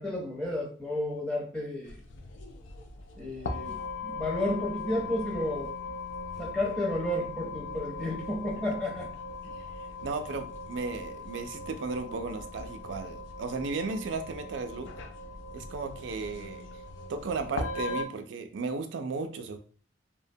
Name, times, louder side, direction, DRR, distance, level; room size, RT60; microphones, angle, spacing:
voice 1, 0.0-1.9 3.2-3.8 4.0-5.7 6.4-9.1, left 1 dB, 5° left, -2 dB, 0.6 m, -32 dB
sound 1, 1.8-18.1, left 3 dB, 85° left, 0.4 m, -39 dB
voice 2, 10.0-14.9 15.5-16.7 17.1-19.6, right 4 dB, 80° right, 6 dB, 0.4 m, -35 dB
2.7 x 2.1 x 2.6 m, 0.42 s
head